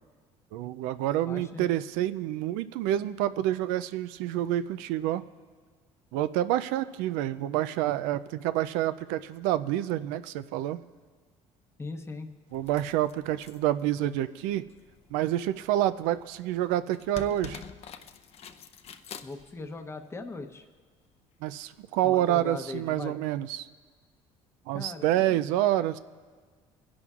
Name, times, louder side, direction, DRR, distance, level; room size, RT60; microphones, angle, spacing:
voice 1, 0.5-5.3 6.1-10.8 12.5-14.6 15.1-17.6 21.4-23.7 24.7-26.0, right 13 dB, 90° right, 13 dB, 0.4 m, -28 dB
voice 2, 1.2-1.7 11.8-12.3 19.2-20.7 22.0-23.2 24.7-25.4, left 3 dB, 20° left, 5 dB, 0.8 m, -39 dB
sound 1, 12.5-20.3 21.1-21.2, left 7 dB, 50° left, 0.7 m, -48 dB
22.5 x 11.0 x 2.4 m, 1.5 s
cardioid pair, 95°, 13 cm